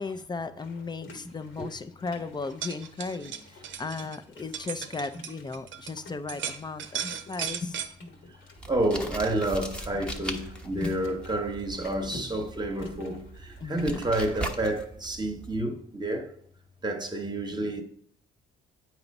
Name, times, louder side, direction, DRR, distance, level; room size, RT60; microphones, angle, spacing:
voice 1, 0.0-3.3 3.8-7.8 13.6-14.0, left 4 dB, 20° left, 0.5 m, -36 dB
sound 1, 0.6-14.7, left 1 dB, 70° left, 1.4 m, -47 dB
sound 2, 2.4-5.9 6.3-7.9, right 8 dB, 75° right, 0.7 m, -36 dB
sound 3, 8.6-15.6, right 1 dB, 5° left, 0.9 m, -39 dB
voice 2, 8.7-16.3 16.8-17.8, right 1 dB, 20° right, 1.0 m, -29 dB
8.2 x 3.0 x 5.3 m
cardioid pair, 90°, 20 cm